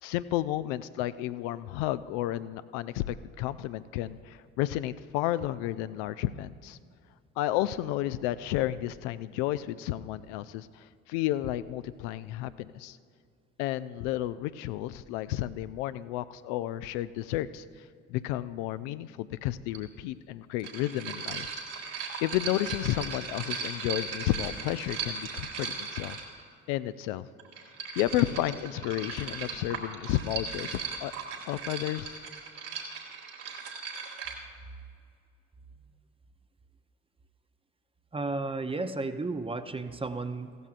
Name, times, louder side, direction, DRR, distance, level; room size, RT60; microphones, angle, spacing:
voice 1, 0.0-6.8 7.4-13.0 13.6-21.5 21.8-21.9 22.2-26.2 26.7-27.3 27.9-31.1 31.4-32.2, left 14 dB, 65° left, 14 dB, 0.5 m, -32 dB
sound 1, 19.7-19.8 20.6-26.5 27.4-34.4, right 5 dB, 65° right, 1.9 m, -38 dB
voice 2, 38.1-40.6, right 3 dB, 15° right, 10 dB, 0.6 m, -33 dB
16.0 x 13.5 x 2.5 m, 2.3 s
figure-of-eight pair, 55°, 40 cm